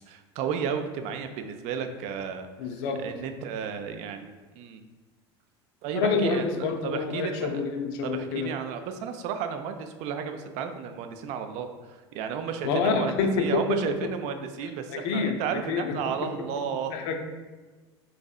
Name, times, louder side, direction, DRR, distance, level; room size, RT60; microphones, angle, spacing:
voice 1, 0.1-2.5 2.9-4.8 5.8-7.6 8.0-17.0, right 7 dB, 55° right, 7 dB, 0.4 m, -33 dB
voice 2, 2.6-3.0 5.9-8.5 12.6-14.1 14.9-16.0 16.9-17.2, left 4 dB, 60° left, 4 dB, 0.5 m, -27 dB
3.9 x 2.7 x 2.3 m, 1.3 s
hypercardioid pair, 85°, 14 cm